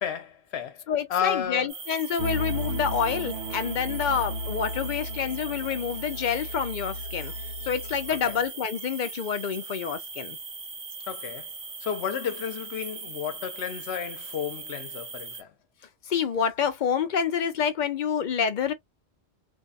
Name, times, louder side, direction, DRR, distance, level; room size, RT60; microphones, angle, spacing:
voice 1, 0.0-0.8 1.1-1.7 8.1-8.4 11.1-11.5 11.8-15.5, left 8 dB, 70° left, 1.0 m, -32 dB
voice 2, 0.9-7.4 7.6-10.4 16.1-18.7, left 7 dB, 55° left, 0.6 m, -28 dB
sound 1, 1.7-15.4, right 4 dB, 55° right, 1.2 m, -40 dB
sound 2, 2.2-8.4, equal, 75° right, 0.9 m, -35 dB
2.6 x 2.1 x 2.4 m
omnidirectional pair, 1.1 m